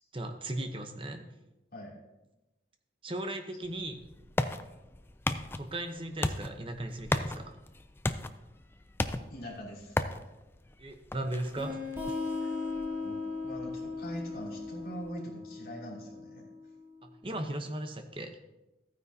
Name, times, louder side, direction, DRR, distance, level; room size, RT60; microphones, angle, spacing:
voice 1, 0.1-1.3 3.0-4.1 5.6-7.5 10.8-11.8 12.1-12.2 17.0-18.4, right 1 dB, 30° right, 6 dB, 0.9 m, -37 dB
sound 1, 3.6-15.1, left 2 dB, 10° left, 0.3 m, -37 dB
voice 2, 9.3-10.0 12.3-12.4 13.0-16.4, equal, 55° left, -4 dB, 3.0 m, -42 dB
sound 2, 11.6-16.9, left 4 dB, 15° right, 2.5 m, -38 dB
14.0 x 9.4 x 2.8 m, 1.0 s
head